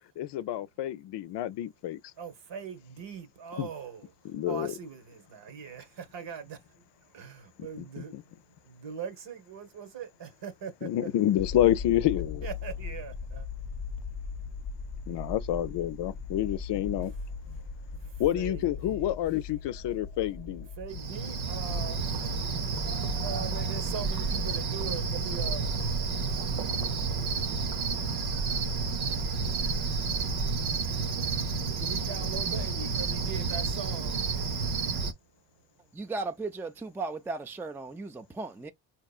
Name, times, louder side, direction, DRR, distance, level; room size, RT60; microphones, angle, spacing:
voice 1, 0.2-2.0 3.6-3.7 4.2-4.7 7.6-8.2 10.8-12.5 15.1-17.1 17.5-17.6 18.2-20.7, left 12 dB, 60° left, 0.6 m, -29 dB
voice 2, 2.2-4.1 4.4-6.8 7.1-8.3 8.6-11.1 12.4-13.5 17.6-19.1 20.8-22.3 22.9-25.8 27.5-27.9 31.8-34.8, right 7 dB, 60° right, 1.1 m, -41 dB
sound 1, 11.4-21.3, left 5 dB, 20° left, 0.9 m, -38 dB
Cricket, 20.9-35.1, right 4 dB, 90° right, 0.9 m, -30 dB
voice 3, 35.9-38.7, right 3 dB, 5° right, 0.4 m, -36 dB
4.4 x 2.9 x 2.3 m
supercardioid pair, 70°, 49 cm